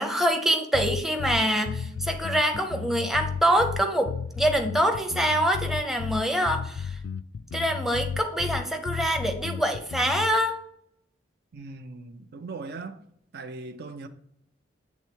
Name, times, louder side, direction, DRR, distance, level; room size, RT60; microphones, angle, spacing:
voice 1, 0.0-7.0 7.5-10.6, equal, ahead, 0.6 m, -25 dB
sound 1, 0.7-10.3, left 6 dB, 70° left, 0.3 m, -33 dB
voice 2, 11.5-13.0 13.3-14.1, right 3 dB, 60° right, 0.5 m, -39 dB
8.3 x 3.4 x 4.5 m
head